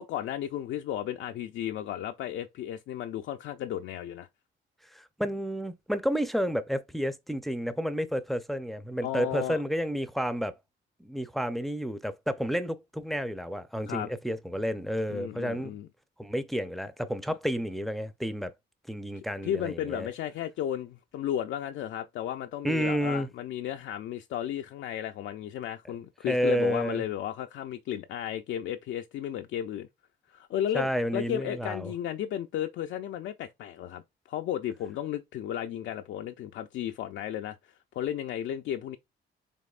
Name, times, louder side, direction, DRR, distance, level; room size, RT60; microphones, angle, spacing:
voice 1, 0.0-4.3 9.0-9.6 13.9-14.1 15.1-15.9 17.3-17.4 19.4-29.9 30.3-34.0 34.3-37.6 37.9-39.0, left 11 dB, 75° left, 0.4 m, -34 dB
voice 2, 4.9-10.5 11.0-15.8 16.2-18.5 18.9-20.1 22.6-23.3 26.3-27.0 30.7-31.9, equal, ahead, 0.5 m, -30 dB
5.3 x 3.5 x 2.4 m
cardioid pair, 90°, 20 cm